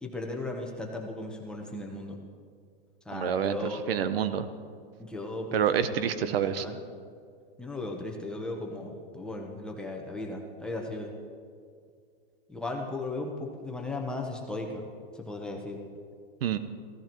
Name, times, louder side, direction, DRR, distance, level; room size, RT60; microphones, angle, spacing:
voice 1, 0.0-2.2 3.1-3.8 5.0-6.8 7.6-11.1 12.5-14.8 15.3-15.8, left 2 dB, 5° left, 0 dB, 1.0 m, -36 dB
voice 2, 3.1-4.5 5.5-6.7 16.4-16.6, right 8 dB, 70° right, 12 dB, 0.9 m, -28 dB
15.5 x 14.5 x 4.6 m, 2.2 s
supercardioid pair, 155°, 30 cm